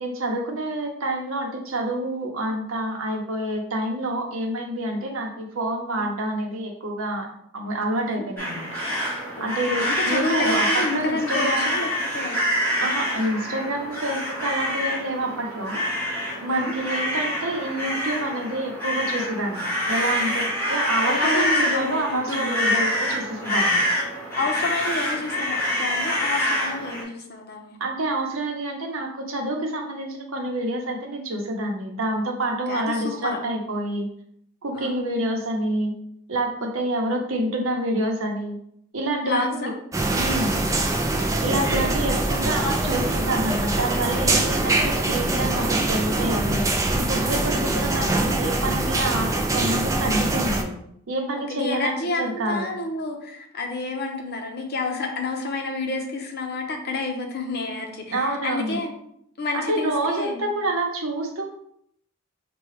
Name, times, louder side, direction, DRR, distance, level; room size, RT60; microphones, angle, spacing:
voice 1, 0.0-8.7 9.4-11.7 12.8-15.8 16.4-23.8 27.8-34.1 34.6-35.9 36.3-38.6 38.9-39.7 40.1-40.6 41.4-46.6 46.9-50.7 51.1-52.7 58.1-58.8 59.5-61.4, right 1 dB, 80° right, 2 dB, 0.8 m, -27 dB
sound 1, 8.4-27.0, left 1 dB, 10° left, 1.4 m, -26 dB
voice 2, 9.4-12.5 16.5-16.7 21.1-22.7 24.4-27.8 32.5-33.4 34.7-35.0 39.2-39.7 41.7-41.9 47.6-47.9 51.5-58.9 59.4-60.5, left 3 dB, 50° left, 2 dB, 0.7 m, -29 dB
sound 2, 39.9-50.6, right 2 dB, 15° right, 0.3 m, -23 dB
5.5 x 2.3 x 3.2 m, 0.71 s
head